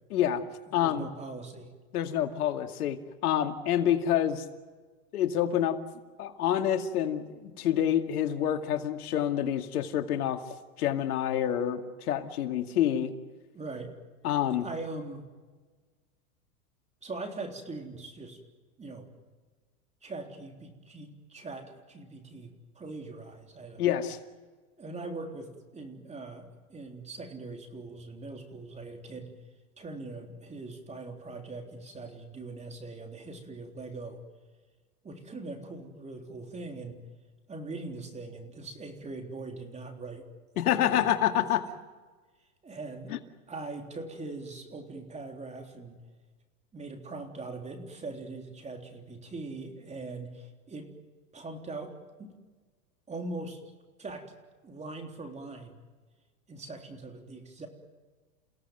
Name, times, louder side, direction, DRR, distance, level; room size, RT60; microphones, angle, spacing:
voice 1, 0.1-0.4 0.7-1.1 1.9-4.4 5.1-5.8 6.2-10.4 10.8-13.1 14.2-14.7 23.8-24.2 40.6-41.7 43.1-43.2, left 10 dB, 80° left, 6 dB, 2.4 m, -27 dB
voice 2, 0.8-1.7 13.5-13.9 14.6-15.2 17.0-18.4 18.8-19.1 20.0-23.8 24.8-29.4 29.8-34.2 35.0-37.0 37.5-40.3 40.6-41.4 42.6-43.1 43.5-46.0 46.7-50.9 51.3-51.9 52.2-52.3 53.1-53.6 54.0-54.3 54.6-55.8 56.5-57.7, right 3 dB, 15° right, 4 dB, 3.7 m, -41 dB
29.5 x 17.0 x 9.3 m, 1.4 s
supercardioid pair, 130°, 44 cm